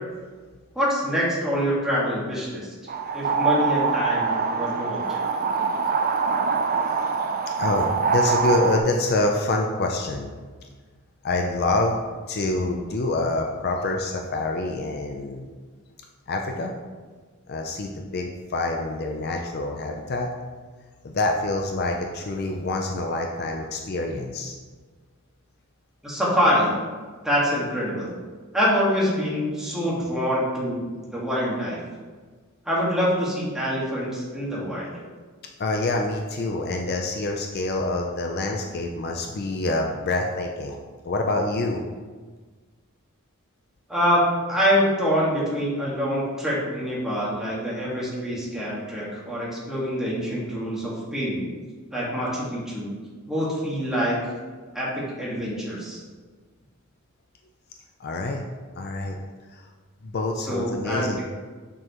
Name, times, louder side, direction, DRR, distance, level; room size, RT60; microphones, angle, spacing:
voice 1, 0.7-2.7 3.1-5.2 26.0-26.7 27.2-28.1 28.5-30.8 31.1-31.8 32.6-34.9 43.9-51.4 51.9-52.9 53.3-54.2 54.7-56.0 60.5-61.2, equal, 5° right, -7 dB, 1.7 m, -25 dB
sound 1, 2.9-8.8, right 5 dB, 40° right, 0.4 m, -24 dB
voice 2, 7.6-10.4 11.2-15.5 16.3-16.7 17.5-20.3 21.0-24.5 35.6-40.8 41.0-41.8 58.0-58.4 58.8-59.2 59.5-59.7 60.0-61.2, left 2 dB, 45° left, 2 dB, 0.5 m, -26 dB
6.9 x 6.3 x 3.0 m, 1.4 s
head